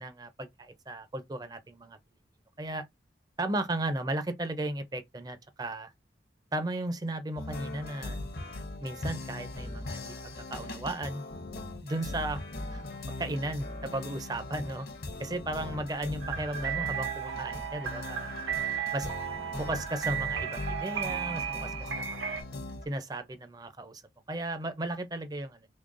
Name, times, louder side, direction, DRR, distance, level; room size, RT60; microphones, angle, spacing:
voice 1, 0.0-2.0 2.6-2.9 3.4-5.9 6.5-8.2 8.8-10.1 10.5-11.2 11.8-12.4 12.7-12.8 13.2-14.9 15.2-18.5 18.9-19.2 19.5-22.4 22.9-24.0 24.3-25.7, right 1 dB, 20° right, 0.4 m, -35 dB
sound 1, 7.4-22.9, left 2 dB, 55° left, 0.8 m, -40 dB
sound 2, 16.2-22.4, right 9 dB, 85° right, 0.8 m, -34 dB
3.7 x 3.3 x 2.5 m
head